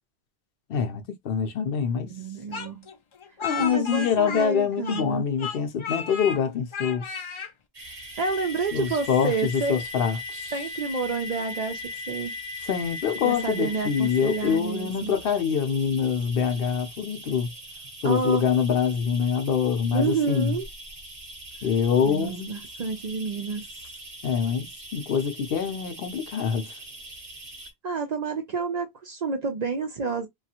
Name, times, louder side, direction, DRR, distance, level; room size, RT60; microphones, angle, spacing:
voice 1, 0.7-2.1 3.4-7.0 8.7-10.5 12.7-17.5 18.0-20.6 21.6-22.5 24.2-26.7, left 7 dB, 65° left, 0.8 m, -25 dB
voice 2, 2.1-2.9 3.6-5.2 8.2-9.8 10.5-12.3 13.2-15.1 18.0-18.5 19.9-20.6 22.0-23.7 27.8-30.3, right 4 dB, 55° right, 0.5 m, -29 dB
Speech, 2.5-5.1 5.4-6.4 6.7-7.5, left 7 dB, 50° left, 0.4 m, -34 dB
sound 1, 7.7-27.7, left 1 dB, 35° right, 0.9 m, -40 dB
3.1 x 2.3 x 2.8 m
omnidirectional pair, 1.0 m